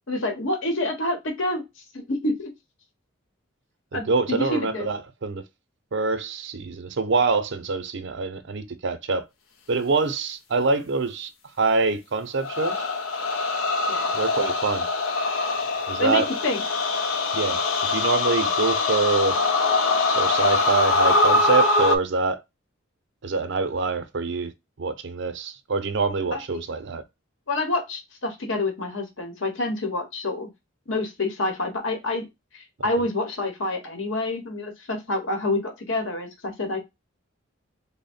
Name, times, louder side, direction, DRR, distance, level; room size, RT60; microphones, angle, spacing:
voice 1, 0.1-1.6 1.9-2.5 3.9-4.9 13.9-14.1 16.0-16.6 26.3-26.6 27.5-30.5 30.9-32.3 32.5-36.8, left 2 dB, 65° left, 0.9 m, -27 dB
voice 2, 3.9-5.4 5.9-9.3 9.7-11.3 11.6-12.9 14.1-14.9 15.9-16.3 17.3-17.6 17.9-19.4 20.1-22.4 23.2-24.5 24.8-27.0, right 4 dB, 60° right, 0.6 m, -25 dB
sound 1, 12.4-22.0, left 3 dB, 85° left, 0.6 m, -23 dB
3.5 x 2.1 x 4.0 m
head